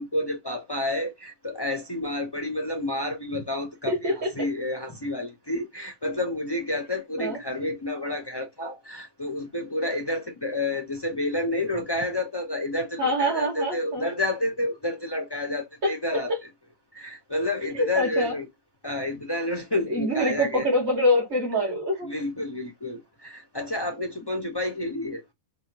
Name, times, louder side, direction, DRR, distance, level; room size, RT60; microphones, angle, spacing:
voice 1, 0.0-16.5 16.9-18.5 18.8-20.7 22.0-25.2, left 1 dB, 40° left, 0.3 m, -30 dB
voice 2, 3.9-4.3 7.2-7.4 13.0-14.1 15.8-15.9 16.3-16.4 17.8-18.3 19.9-22.1, equal, 60° right, 2.1 m, -25 dB
4.8 x 2.2 x 2.8 m
omnidirectional pair, 1.3 m